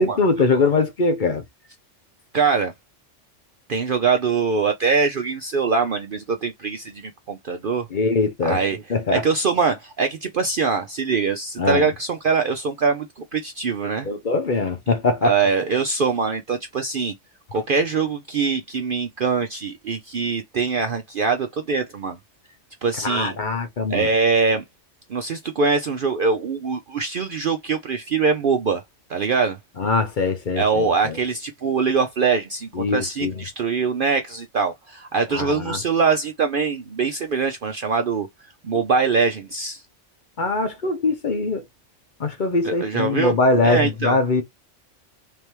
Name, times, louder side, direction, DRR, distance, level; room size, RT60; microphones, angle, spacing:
voice 1, 0.0-1.4 7.9-8.6 8.9-9.2 11.6-11.9 14.0-15.3 23.0-24.1 29.8-31.2 32.7-33.4 35.3-35.8 40.4-41.6 42.2-44.4, left 3 dB, 45° left, 0.9 m, -22 dB
voice 2, 2.3-2.7 3.7-7.9 8.4-8.8 9.1-14.1 15.2-17.1 17.5-22.2 22.8-23.4 23.9-24.6 25.1-28.8 29.1-29.6 30.6-38.3 38.6-39.8 42.6-43.4 43.6-44.2, right 5 dB, 55° right, 0.7 m, -23 dB
3.6 x 3.3 x 3.0 m
omnidirectional pair, 1.3 m